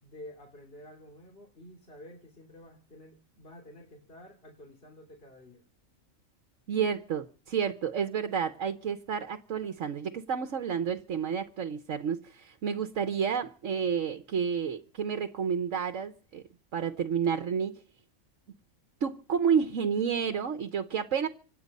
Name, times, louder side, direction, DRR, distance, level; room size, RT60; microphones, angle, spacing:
voice 1, 0.0-5.6, left 1 dB, 45° left, 3.2 m, -50 dB
voice 2, 6.7-16.4 16.7-17.7 19.0-21.3, right 7 dB, 70° right, 1.3 m, -30 dB
26.0 x 9.2 x 5.4 m
omnidirectional pair, 1.4 m